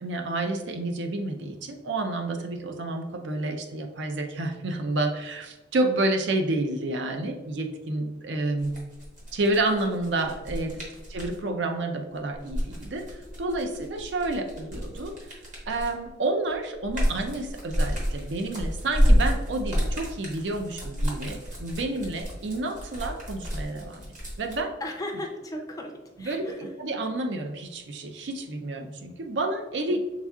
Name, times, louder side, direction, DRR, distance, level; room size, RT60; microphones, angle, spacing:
voice 1, 0.0-8.7 9.3-10.8 11.1-15.4 15.7-24.1 24.4-24.7 26.2-30.0, right 2 dB, 65° right, 5 dB, 0.5 m, -29 dB
sound 1, 8.6-11.4 12.3-16.1 16.5-24.6, equal, 40° right, 1.2 m, -28 dB
voice 2, 24.8-26.7 29.9-30.0, left 1 dB, 20° left, 2 dB, 0.4 m, -36 dB
5.7 x 3.5 x 2.3 m, 1.1 s
head